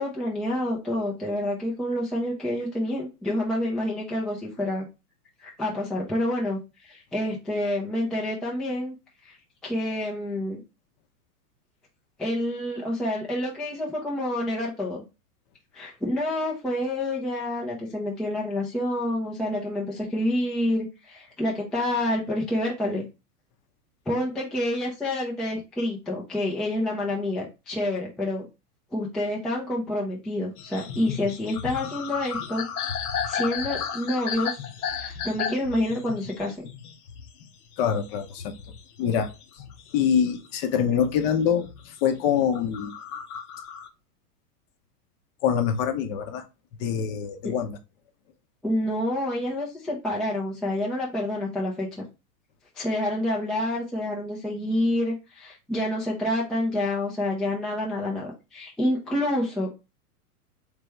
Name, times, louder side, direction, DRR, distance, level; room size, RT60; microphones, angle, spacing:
voice 1, 0.0-4.8 5.4-8.9 9.2-9.4 9.6-10.6 12.2-15.0 15.7-23.1 24.1-28.5 28.9-32.7 33.3-36.7 47.4-47.5 48.6-51.9 52.8-59.7, left 1 dB, ahead, 0.4 m, -28 dB
sound 1, 30.6-40.5 40.9-41.9 42.4-43.9, left 7 dB, 70° left, 0.8 m, -34 dB
voice 2, 37.8-38.5 39.0-39.3 39.5-39.6 39.9-42.9 45.4-46.4 46.8-47.8, left 8 dB, 40° left, 0.7 m, -25 dB
3.3 x 3.3 x 3.2 m
hypercardioid pair, 110°, 47 cm